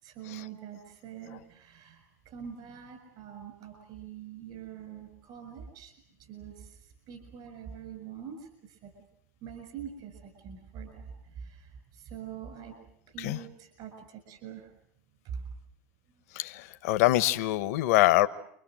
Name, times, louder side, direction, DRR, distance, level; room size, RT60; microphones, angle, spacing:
voice 1, 0.0-5.9 6.3-6.8 7.1-8.9 9.4-12.8 13.1-14.7, right 8 dB, 55° right, 7 dB, 6.9 m, -45 dB
voice 2, 16.3-18.3, left 17 dB, 70° left, 11 dB, 1.0 m, -24 dB
30.0 x 24.0 x 7.7 m, 0.73 s
hypercardioid pair, 100°, 9 cm